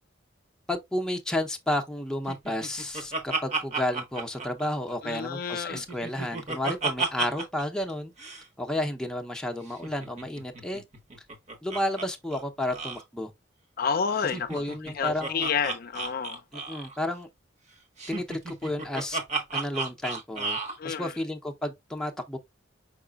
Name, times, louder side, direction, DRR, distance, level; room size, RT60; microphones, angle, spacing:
voice 1, 0.7-8.1 8.6-10.8 11.6-13.3 14.2-15.5 16.5-17.3 18.1-19.2 19.5-20.6 20.8-22.4, left 1 dB, 5° left, 0.6 m, -32 dB
Laughter, 2.3-5.2 5.5-7.6 7.9-8.0 8.2-8.4 9.7-12.1 12.3-12.4 12.7-13.0 14.2-17.0 18.0-20.8, right 3 dB, 40° right, 1.0 m, -33 dB
voice 2, 5.0-5.8 13.8-14.6 15.0-16.4 20.8-21.1, left 6 dB, 50° left, 0.4 m, -29 dB
4.9 x 4.7 x 2.3 m
head